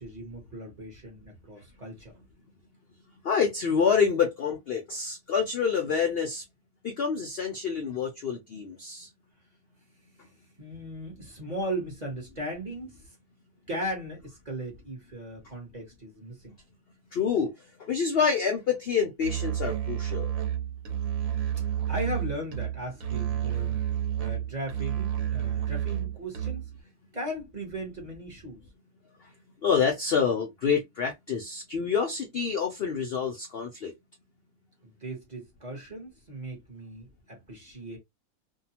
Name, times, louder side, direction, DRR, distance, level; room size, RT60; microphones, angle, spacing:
voice 1, 0.0-2.2 10.6-13.2 13.7-16.6 21.7-23.8 24.2-26.7 27.1-28.6 34.8-38.0, right 1 dB, 35° right, 0.8 m, -37 dB
voice 2, 3.2-6.4 6.8-9.1 17.1-17.5 17.9-20.3 29.6-33.9, left 6 dB, 70° left, 0.5 m, -27 dB
Musical instrument, 19.2-26.8, right 10 dB, 70° right, 1.1 m, -30 dB
2.7 x 2.1 x 2.8 m
omnidirectional pair, 1.6 m